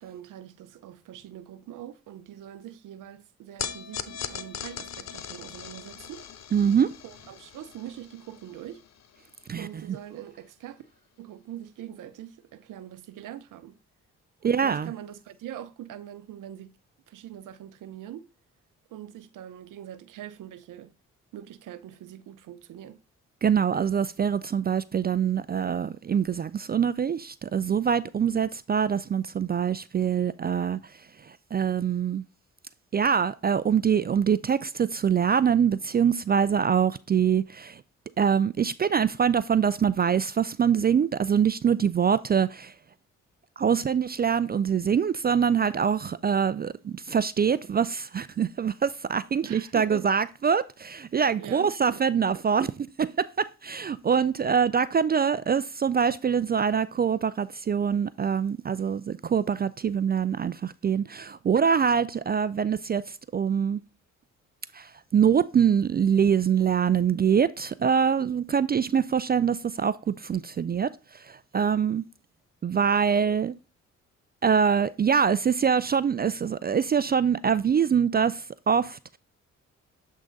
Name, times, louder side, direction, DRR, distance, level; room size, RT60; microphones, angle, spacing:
voice 1, 0.0-6.3 7.0-8.8 9.6-10.8 11.2-13.8 14.4-16.8 17.1-18.3 18.9-20.9 21.3-23.0 49.4-50.1 51.4-51.7, right 11 dB, 75° right, 0.7 m, -43 dB
sound 1, 3.6-10.0, left 8 dB, 55° left, 0.8 m, -40 dB
voice 2, 6.5-6.9 9.5-9.7 14.4-14.9 23.4-30.8 31.2-32.2 32.9-37.8 38.2-42.7 43.6-63.8 64.7-72.0 72.6-73.5 74.4-79.2, right 7 dB, 30° right, 0.4 m, -24 dB
7.5 x 3.7 x 3.9 m
supercardioid pair, 50°, 32 cm